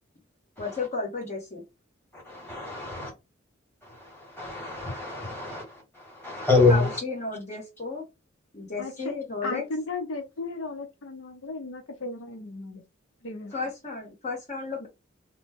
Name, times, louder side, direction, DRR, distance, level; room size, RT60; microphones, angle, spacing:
voice 1, 0.6-1.6 6.7-8.0 8.5-9.6 13.5-14.9, left 3 dB, 35° left, 1.1 m, -33 dB
voice 2, 2.1-3.1 3.8-7.0, left 3 dB, 10° left, 1.7 m, -26 dB
voice 3, 8.8-9.1 9.4-12.8 13.2-13.5, left 3 dB, 85° left, 0.7 m, -35 dB
2.9 x 2.1 x 3.4 m
head